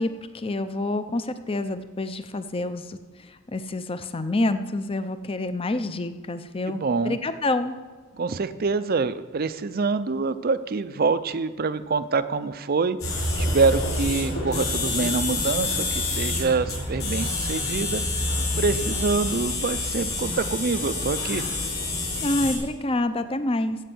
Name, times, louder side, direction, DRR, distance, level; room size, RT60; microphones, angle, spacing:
voice 1, 0.0-7.7 22.2-23.8, left 2 dB, 25° left, 11 dB, 0.6 m, -27 dB
voice 2, 6.7-7.2 8.1-18.0 18.6-21.4, right 4 dB, 45° right, 13 dB, 0.5 m, -26 dB
sound 1, 13.0-22.6, left 2 dB, 85° left, 4.4 m, -27 dB
15.0 x 5.4 x 7.7 m, 1.4 s
head